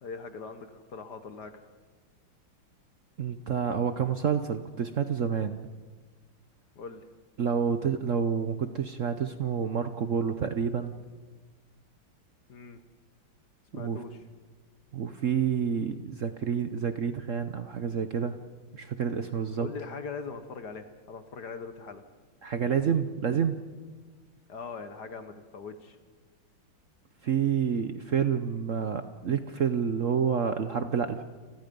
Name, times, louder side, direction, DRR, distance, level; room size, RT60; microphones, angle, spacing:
voice 1, 0.0-1.7 6.7-7.1 12.5-12.8 13.7-14.2 19.6-22.0 24.5-26.0, left 5 dB, 55° left, 9 dB, 1.6 m, -41 dB
voice 2, 3.2-5.6 7.4-10.9 13.7-14.0 14.9-18.4 18.7-19.7 22.4-23.6 27.2-31.2, right 7 dB, 60° right, 9 dB, 0.8 m, -28 dB
29.5 x 20.0 x 5.3 m, 1.4 s
omnidirectional pair, 2.4 m